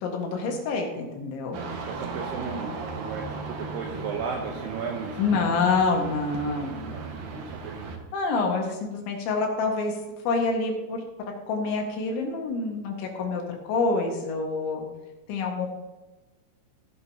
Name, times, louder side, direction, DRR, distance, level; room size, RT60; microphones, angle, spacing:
voice 1, 0.0-1.6 5.2-7.0 8.1-10.0 10.3-11.1 11.5-14.9 15.3-15.7, left 4 dB, 70° left, 1 dB, 3.7 m, -27 dB
sound 1, 1.5-8.0, right 4 dB, 65° right, 2.5 m, -36 dB
voice 2, 1.7-5.4 6.8-7.9, right 5 dB, 80° right, 2 dB, 2.3 m, -35 dB
16.0 x 8.9 x 2.8 m, 1.1 s
omnidirectional pair, 5.9 m